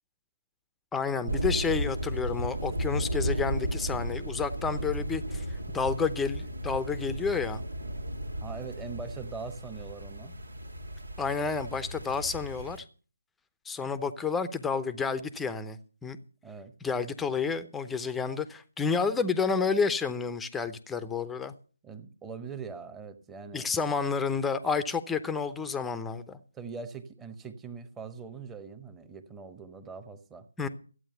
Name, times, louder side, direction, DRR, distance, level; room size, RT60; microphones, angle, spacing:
voice 1, 0.9-7.6 11.2-12.8 13.7-16.2 16.8-21.5 23.5-26.4 30.6-30.7, left 5 dB, 5° left, 0.8 m, -30 dB
sound 1, 1.3-12.8, right 1 dB, 80° right, 1.9 m, -34 dB
voice 2, 8.4-10.4 16.4-16.7 21.8-23.7 26.5-30.5, right 5 dB, 10° right, 1.2 m, -42 dB
14.5 x 8.9 x 6.8 m
figure-of-eight pair, 150°, 0 cm